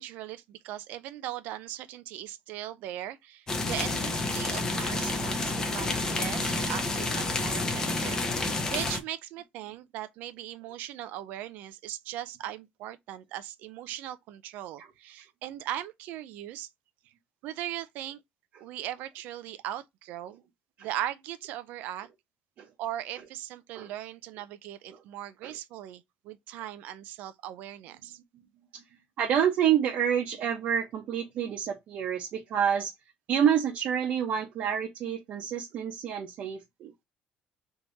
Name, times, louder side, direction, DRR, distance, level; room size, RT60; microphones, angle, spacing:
voice 1, 0.0-16.7 17.4-18.2 18.6-20.4 20.8-22.1 22.8-28.2, right 12 dB, 75° right, 0.5 m, -39 dB
sound 1, 3.5-9.0, left 2 dB, 20° left, 0.7 m, -29 dB
voice 2, 29.2-32.9 33.3-36.9, right 8 dB, 55° right, 0.9 m, -28 dB
3.6 x 2.9 x 3.9 m
cardioid pair, 155°, 3 cm